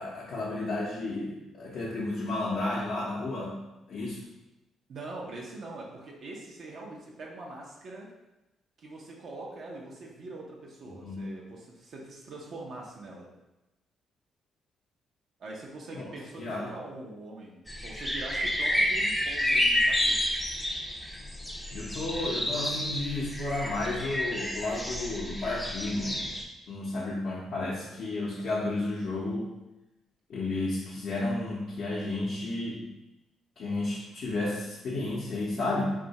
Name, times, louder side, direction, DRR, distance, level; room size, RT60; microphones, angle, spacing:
voice 1, 0.0-3.6 3.9-4.3 10.9-11.3 15.9-16.0 16.4-16.7 21.7-26.3 26.7-29.5 30.3-32.8 33.6-35.9, left 2 dB, 65° left, -5 dB, 0.6 m, -32 dB
voice 2, 4.9-8.1 8.8-13.3 15.4-20.4, right 2 dB, 60° right, -2 dB, 0.6 m, -43 dB
sound 1, 17.7-26.4, left 1 dB, 5° left, 0.5 m, -30 dB
2.7 x 2.3 x 4.0 m, 0.97 s
cardioid pair, 90°, 0 cm